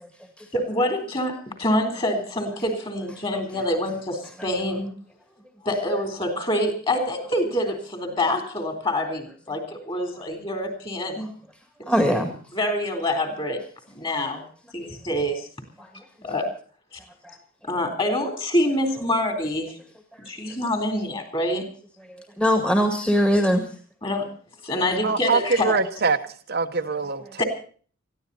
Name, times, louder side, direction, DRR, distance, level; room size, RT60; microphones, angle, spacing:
voice 1, 0.5-4.9 5.6-11.3 12.1-12.2 12.5-13.6 13.9-14.5 14.7-15.5 16.2-16.5 17.6-19.8 20.3-21.7 24.0-24.3 24.6-25.8 27.4-27.5, left 1 dB, 25° left, 5 dB, 3.6 m, -26 dB
voice 2, 11.9-12.3 14.0-14.1 14.8-14.9 15.8-15.9 17.2-17.4 22.4-23.7, equal, 5° left, 4 dB, 1.9 m, -21 dB
voice 3, 25.0-26.2 26.5-27.4, right 4 dB, 50° right, 6 dB, 1.0 m, -23 dB
20.0 x 14.5 x 4.1 m, 0.43 s
head